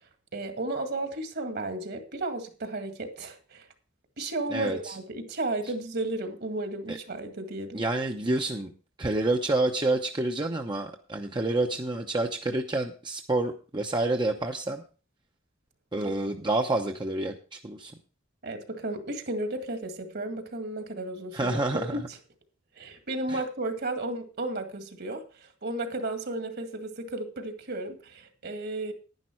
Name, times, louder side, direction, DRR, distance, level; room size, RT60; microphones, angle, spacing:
voice 1, 0.3-3.7 4.2-7.8 16.0-16.1 18.4-21.6 21.9-22.0 22.8-28.9, right 2 dB, 55° right, 2.0 m, -33 dB
voice 2, 4.5-5.0 6.9-7.0 7.7-8.7 9.0-14.8 15.9-17.9 21.3-22.0 23.3-23.4, right 2 dB, 25° right, 0.8 m, -28 dB
10.5 x 10.5 x 4.5 m
head